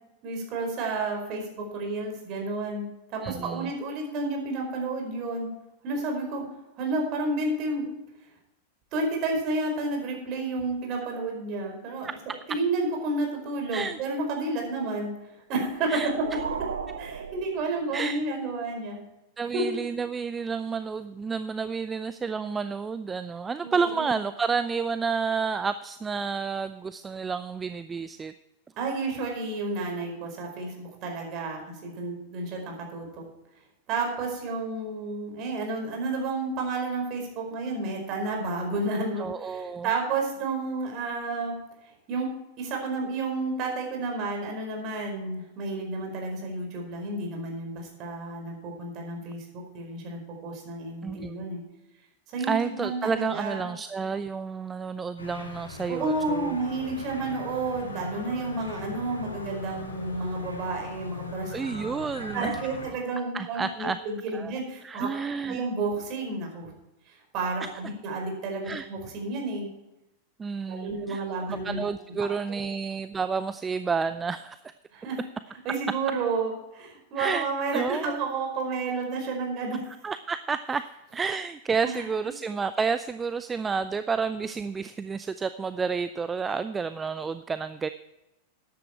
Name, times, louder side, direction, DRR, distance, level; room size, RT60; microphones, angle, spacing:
voice 1, 0.2-5.5 5.8-6.4 6.8-7.8 8.9-12.1 12.5-15.1 15.5-15.9 17.0-19.0 19.5-19.6 23.6-24.1 28.8-33.1 33.9-41.5 42.1-42.3 42.6-49.4 49.7-51.6 52.3-53.7 55.9-61.9 62.2-65.1 65.5-66.7 67.3-69.7 70.7-71.9 72.5-72.6 74.9-75.2 75.6-79.8 81.8-82.1, right 3 dB, 40° right, 1 dB, 4.8 m, -31 dB
voice 2, 3.2-3.7 12.0-12.1 13.7-14.0 15.9-16.1 17.9-18.2 19.4-28.3 39.2-39.9 51.0-51.4 52.5-56.5 61.5-62.5 63.3-64.0 64.3-64.5 64.8-65.6 67.6-67.7 68.6-68.9 70.4-71.2 71.5-74.7 77.2-77.5 77.7-78.2 80.0-80.8 81.1-87.9, right 5 dB, 15° right, 12 dB, 0.5 m, -30 dB
sound 1, 15.6-18.2, right 6 dB, 70° right, 1.2 m, -37 dB
sound 2, 55.2-62.9, left 3 dB, 75° left, 2.8 m, -40 dB
14.0 x 10.5 x 4.5 m, 0.93 s
figure-of-eight pair, 90°, 0 cm